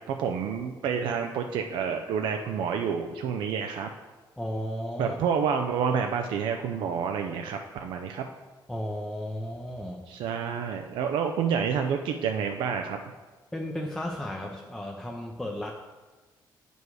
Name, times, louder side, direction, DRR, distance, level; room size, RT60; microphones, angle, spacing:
voice 1, 0.1-3.9 5.0-8.2 10.1-13.0, right 7 dB, 85° right, 4 dB, 0.5 m, -29 dB
voice 2, 4.4-5.2 8.7-10.1 13.5-15.7, left 1 dB, 5° left, -1 dB, 0.6 m, -34 dB
7.8 x 5.2 x 4.8 m, 1.3 s
cardioid pair, 130°, 8 cm